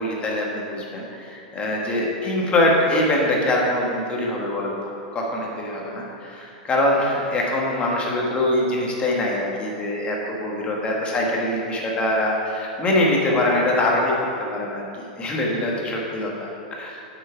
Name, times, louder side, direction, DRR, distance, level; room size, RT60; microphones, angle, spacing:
voice 1, 0.0-4.7 5.1-14.8 15.2-16.5 16.8-17.0, left 1 dB, 25° left, -2 dB, 1.6 m, -23 dB
7.3 x 6.2 x 4.6 m, 2.6 s
hypercardioid pair, 115°, 4 cm